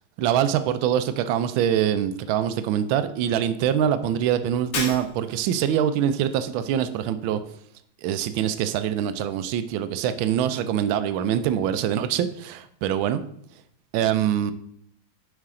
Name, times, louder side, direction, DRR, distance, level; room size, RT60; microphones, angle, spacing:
voice 1, 0.2-7.4 8.0-13.2 13.9-14.5, right 10 dB, 80° right, 11 dB, 1.4 m, -24 dB
Shatter, 4.7-5.5, left 3 dB, 75° left, 2.2 m, -31 dB
9.7 x 5.8 x 3.7 m, 0.68 s
omnidirectional pair, 2.2 m